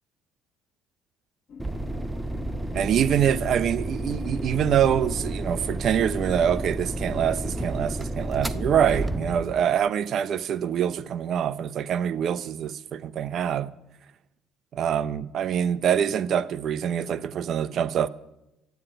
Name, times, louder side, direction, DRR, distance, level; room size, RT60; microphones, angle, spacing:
sound 1, 1.5-9.4, left 5 dB, 55° left, 1.3 m, -43 dB
sound 2, 1.6-9.6, right 1 dB, 10° right, 0.8 m, -31 dB
voice 1, 2.7-13.7 14.7-18.1, right 9 dB, 55° right, 0.7 m, -25 dB
13.5 x 9.1 x 10.0 m
supercardioid pair, 85°, 0 cm